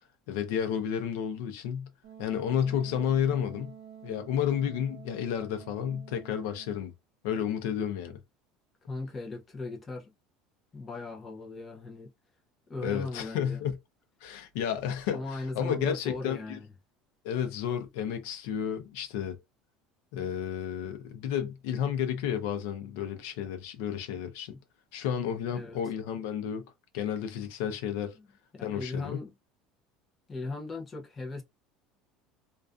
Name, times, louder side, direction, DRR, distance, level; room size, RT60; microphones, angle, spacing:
voice 1, 0.3-1.9 2.2-3.7 4.0-6.9 7.2-8.2 12.8-13.8 14.2-16.6 17.2-19.4 20.1-24.5 24.9-26.7 26.9-28.2 28.6-29.2, left 9 dB, 70° left, 0.5 m, -31 dB
Wind instrument woodwind instrument, 2.0-6.9, right 9 dB, 50° right, 0.6 m, -49 dB
voice 2, 8.9-10.1 10.7-12.1 12.7-13.6 15.1-16.7 24.5-24.6 25.5-25.8 28.1-28.3 28.5-29.3 30.3-31.4, left 3 dB, 15° left, 0.5 m, -38 dB
2.4 x 2.3 x 2.4 m
cardioid pair, 175°, 0 cm